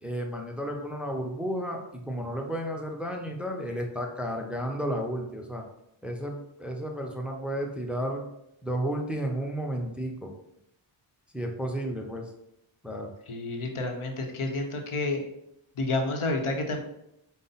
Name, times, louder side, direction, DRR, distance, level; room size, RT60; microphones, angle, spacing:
voice 1, 0.0-5.6 6.0-8.2 8.6-10.3 11.3-12.2 12.8-13.1, equal, ahead, 2 dB, 0.5 m, -32 dB
voice 2, 13.3-15.2 15.8-16.8, left 2 dB, 75° left, 4 dB, 0.8 m, -29 dB
5.2 x 2.1 x 3.9 m, 0.80 s
wide cardioid pair, 75°, 50 cm